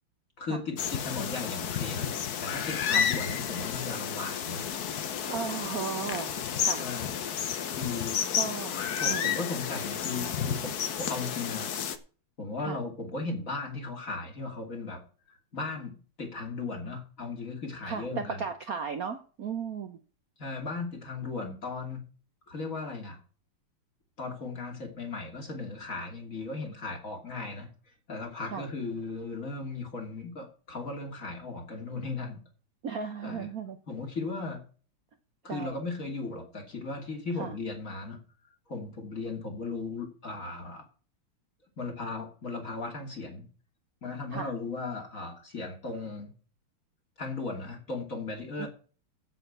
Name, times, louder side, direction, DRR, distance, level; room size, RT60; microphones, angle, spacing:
voice 1, 0.4-2.1 2.4-4.7 6.8-7.2 7.7-8.2 9.0-10.7 11.0-11.7 12.4-15.0 15.3-18.5 20.4-22.0 22.5-23.2 24.2-27.7 28.1-32.4 33.2-33.5 33.9-34.6 35.4-38.2 38.7-40.8 41.8-43.5 44.0-46.3 47.2-48.7, left 3 dB, 35° left, 2 dB, 3.0 m, -36 dB
sound 1, 0.8-12.0, left 8 dB, 55° left, 1.2 m, -31 dB
voice 2, 5.3-6.8 8.4-9.4 12.6-12.8 17.8-20.0 28.5-28.7 32.8-33.8 35.5-35.8 37.4-37.5 44.3-44.5 48.6-48.7, right 6 dB, 55° right, 7 dB, 1.1 m, -36 dB
8.1 x 7.9 x 8.1 m, 0.39 s
omnidirectional pair, 2.4 m